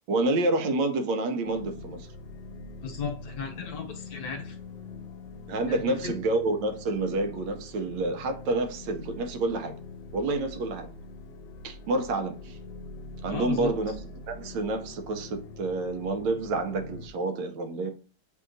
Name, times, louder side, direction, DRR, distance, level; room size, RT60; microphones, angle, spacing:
voice 1, 0.1-2.1 5.5-9.7 10.1-10.9 11.6-12.6 13.2-14.0 14.3-17.9, right 2 dB, 90° right, 1.3 m, -28 dB
sound 1, 1.5-17.1, left 3 dB, 90° left, 1.3 m, -43 dB
voice 2, 2.8-4.6 5.7-6.1 13.3-13.7, left 6 dB, 65° left, 1.2 m, -35 dB
7.4 x 2.8 x 2.6 m
omnidirectional pair, 1.9 m